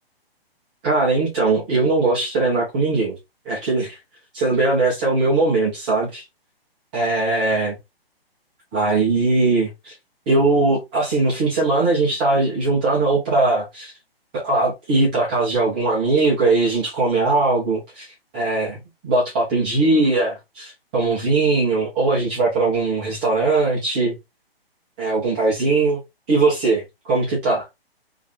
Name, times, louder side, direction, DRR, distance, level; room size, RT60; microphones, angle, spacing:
voice 1, 0.8-3.2 3.5-4.0 4.3-6.2 6.9-7.8 8.7-9.9 10.3-13.9 14.3-18.8 19.0-24.1 25.0-26.0 26.3-27.7, right 3 dB, 10° right, 0.4 m, -20 dB
2.5 x 2.3 x 3.4 m
figure-of-eight pair, 135°, 31 cm